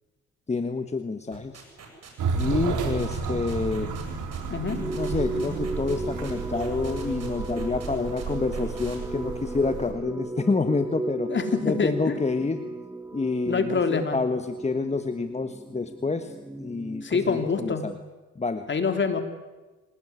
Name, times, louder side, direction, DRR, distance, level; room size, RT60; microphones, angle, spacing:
voice 1, 0.5-1.5 2.3-3.9 4.9-11.3 11.6-12.6 13.1-17.9 18.4-18.7, left 3 dB, 20° left, 8 dB, 1.4 m, -28 dB
sound 1, 1.3-9.0, right 6 dB, 55° right, 7.9 m, -46 dB
sound 2, 2.2-9.9, right 5 dB, 80° right, 4.4 m, -32 dB
sound 3, 4.7-17.3, right 1 dB, 5° right, 1.5 m, -36 dB
voice 2, 11.3-12.2 13.5-14.2 17.0-17.9 18.7-19.2, left 5 dB, 40° left, 7 dB, 3.5 m, -25 dB
27.5 x 19.0 x 9.7 m, 1.2 s
cardioid pair, 90°, 30 cm